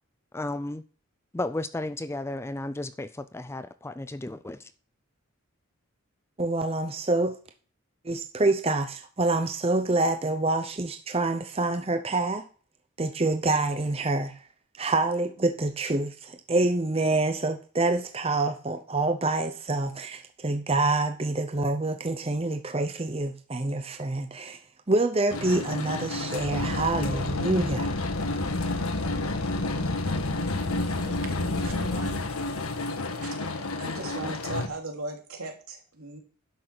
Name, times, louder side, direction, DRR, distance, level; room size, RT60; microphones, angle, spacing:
voice 1, 0.3-0.8 1.3-4.7, left 2 dB, 10° left, 0.4 m, -33 dB
voice 2, 6.4-7.4 8.0-12.4 13.0-14.4 14.8-24.6 24.9-27.9, right 2 dB, 25° right, 0.7 m, -26 dB
sound 1, 25.3-34.7, left 2 dB, 85° left, 1.5 m, -29 dB
voice 3, 31.0-32.2 33.2-36.2, right 3 dB, 85° right, 3.0 m, -39 dB
11.5 x 6.4 x 6.0 m
head